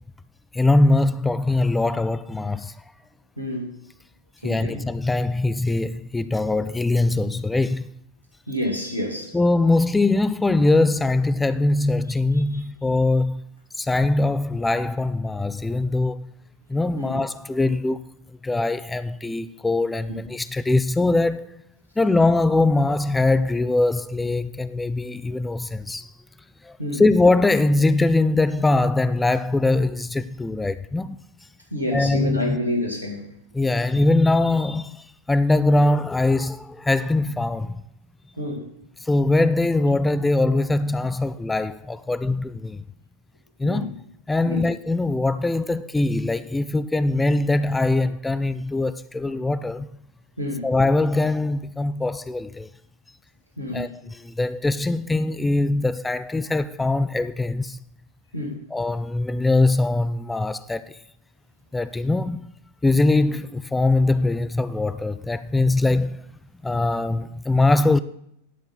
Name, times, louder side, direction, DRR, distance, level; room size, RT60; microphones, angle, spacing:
voice 1, 0.5-2.7 4.4-7.9 9.3-13.4 13.8-16.3 16.7-18.1 18.4-21.6 22.0-26.1 26.6-31.2 31.9-32.6 33.5-37.8 39.0-42.8 43.6-44.0 44.3-49.9 50.6-52.7 53.7-57.8 58.7-61.0 61.7-62.5 62.8-66.2 66.6-68.0, left 2 dB, 10° left, 0.3 m, -22 dB
voice 2, 3.4-3.8 4.4-4.8 8.5-9.4 17.0-17.2 20.1-20.2 26.8-27.0 31.7-33.3 38.4-38.7 43.6-43.9 44.4-44.6 50.4-50.7 53.6-53.9 58.3-58.6, left 1 dB, 85° right, 2.0 m, -28 dB
11.0 x 4.4 x 5.7 m
figure-of-eight pair, 90°, 0 cm